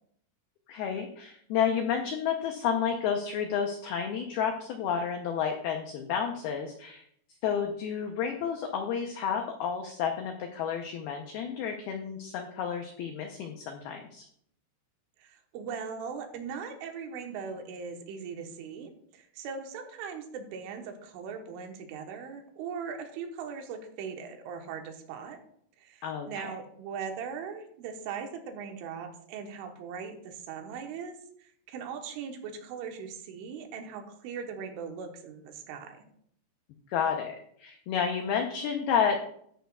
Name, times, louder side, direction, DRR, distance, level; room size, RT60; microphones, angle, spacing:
voice 1, 0.7-7.0 7.4-14.3 26.0-26.5 36.9-39.3, left 7 dB, 85° left, 4 dB, 2.2 m, -31 dB
voice 2, 15.2-25.4 25.8-31.2 31.7-36.1, right 6 dB, 80° right, 4 dB, 3.6 m, -39 dB
13.5 x 10.5 x 2.4 m, 0.66 s
omnidirectional pair, 5.6 m